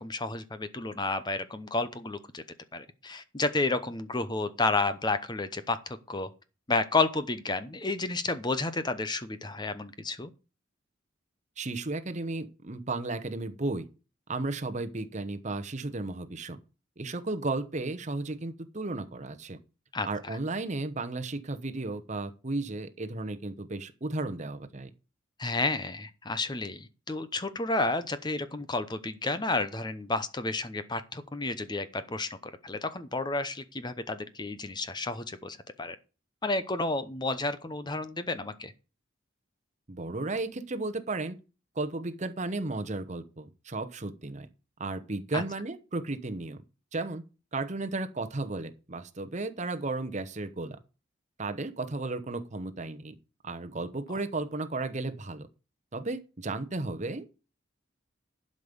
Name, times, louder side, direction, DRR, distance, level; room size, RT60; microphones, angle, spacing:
voice 1, 0.0-2.4 2.7-6.3 6.7-10.3 19.9-20.4 25.4-36.0 36.4-38.7 45.3-45.4, left 3 dB, 20° left, 0.8 m, -31 dB
voice 2, 11.6-13.9 14.3-16.6 17.0-19.6 20.0-24.9 39.9-41.3 41.8-44.5 44.8-46.6 46.9-47.2 47.5-50.8 51.4-53.1 53.4-55.5 55.9-57.4, right 2 dB, 35° right, 1.0 m, -34 dB
11.5 x 5.3 x 6.9 m
head